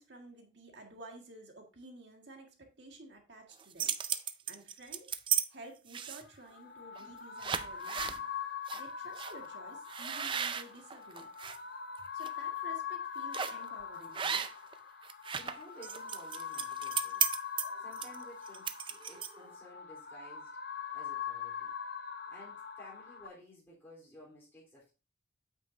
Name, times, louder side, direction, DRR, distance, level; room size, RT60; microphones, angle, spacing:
voice 1, 0.0-4.0 4.5-5.1 5.5-8.2 8.7-11.3 12.1-14.5, right 1 dB, 60° right, 2 dB, 1.8 m, -52 dB
sound 1, 3.5-5.4 5.9-6.4 7.0-7.1 7.4-8.2 8.7-8.8 9.2-9.3 9.9-11.6 12.0-12.3 13.3-13.7 14.1-14.7 15.0-19.5, right 8 dB, 25° right, 0.4 m, -35 dB
sound 2, 6.3-23.3, left 7 dB, 55° left, 0.8 m, -42 dB
voice 2, 15.3-17.2 17.8-20.5 20.9-21.7 22.3-24.9, equal, 10° left, -7 dB, 3.6 m, -54 dB
8.8 x 7.3 x 2.7 m, 0.32 s
head